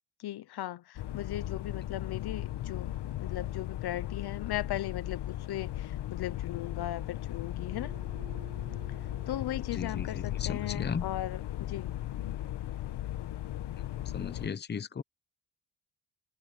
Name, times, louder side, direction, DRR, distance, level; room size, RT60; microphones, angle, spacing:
voice 1, 0.2-2.9 3.2-7.9 9.3-11.9, left 13 dB, 70° left, 0.9 m, -37 dB
sound 1, 1.0-14.5, left 13 dB, 90° left, 1.4 m, -37 dB
sound 2, 2.0-10.2, right 8 dB, 50° right, 5.4 m, -58 dB
voice 2, 9.7-11.0 14.1-15.0, left 6 dB, 25° left, 0.8 m, -36 dB
cardioid pair, 130°, 40 cm